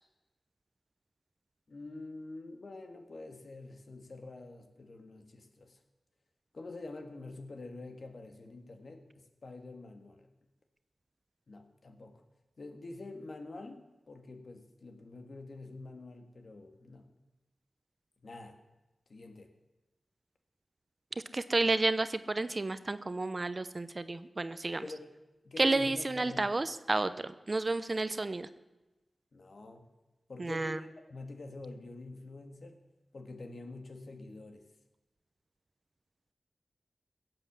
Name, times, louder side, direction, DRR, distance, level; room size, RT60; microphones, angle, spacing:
voice 1, 1.7-5.8 6.5-10.3 11.5-12.2 12.6-17.1 18.2-18.6 19.1-19.5 24.8-25.1 25.4-26.5 29.3-29.9 30.3-32.8 33.1-34.7, left 2 dB, 65° left, 5 dB, 1.7 m, -46 dB
voice 2, 21.3-24.8 25.6-28.5 30.4-30.8, right 2 dB, 40° right, 13 dB, 0.6 m, -31 dB
16.5 x 7.9 x 7.4 m, 1.1 s
wide cardioid pair, 70°, 0 cm